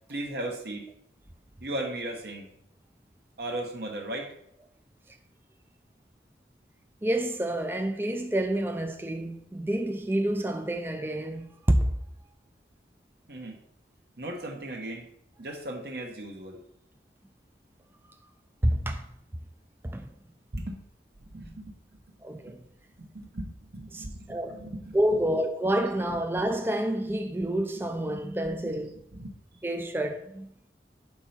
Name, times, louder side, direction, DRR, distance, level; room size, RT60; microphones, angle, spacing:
voice 1, 0.1-0.9 1.6-2.5 3.4-4.3 13.3-13.6 14.2-15.1 15.4-16.6 20.5-20.8 21.2-21.7 23.0-25.2 28.6-28.8 29.1-29.4, right 1 dB, 65° right, 1.0 m, -37 dB
voice 2, 7.0-11.9 18.6-19.0 19.8-20.1 22.2-22.6 23.9-24.6 24.9-29.0 29.6-30.5, right 1 dB, 10° right, 0.4 m, -28 dB
4.6 x 4.3 x 5.6 m
head